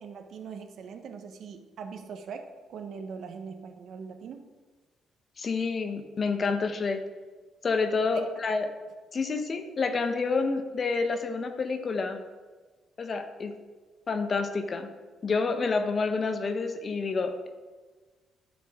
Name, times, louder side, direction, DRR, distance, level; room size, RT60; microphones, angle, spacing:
voice 1, 0.0-4.5 8.1-8.3, right 6 dB, 65° right, 6 dB, 1.0 m, -41 dB
voice 2, 5.4-7.0 7.6-8.7 9.1-12.2 13.0-13.5 14.1-14.9 15.2-17.5, left 4 dB, 45° left, 7 dB, 1.0 m, -28 dB
13.0 x 6.3 x 3.7 m, 1.3 s
cardioid pair, 90°, 0 cm